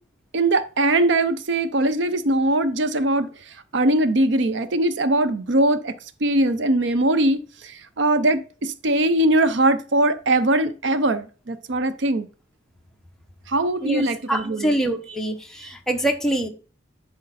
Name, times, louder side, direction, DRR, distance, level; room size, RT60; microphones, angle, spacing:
voice 1, 0.3-5.9 6.2-12.3 13.5-14.7 15.6-15.7, right 1 dB, 65° right, 0.6 m, -21 dB
voice 2, 14.3-16.5, right 1 dB, 5° left, 1.0 m, -24 dB
10.5 x 4.4 x 4.1 m
head